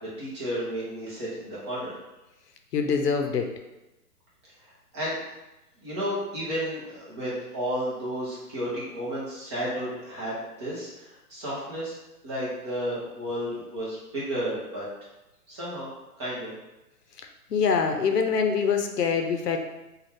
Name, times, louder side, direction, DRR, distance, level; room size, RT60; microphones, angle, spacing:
voice 1, 0.0-1.9 4.9-5.2 5.8-11.9 12.2-14.8 15.5-15.9 16.2-16.5, equal, 20° right, -7 dB, 0.5 m, -32 dB
voice 2, 2.7-3.5 17.5-19.6, left 6 dB, 85° left, 4 dB, 0.6 m, -24 dB
2.5 x 2.3 x 3.3 m, 1.0 s
figure-of-eight pair, 130°, 47 cm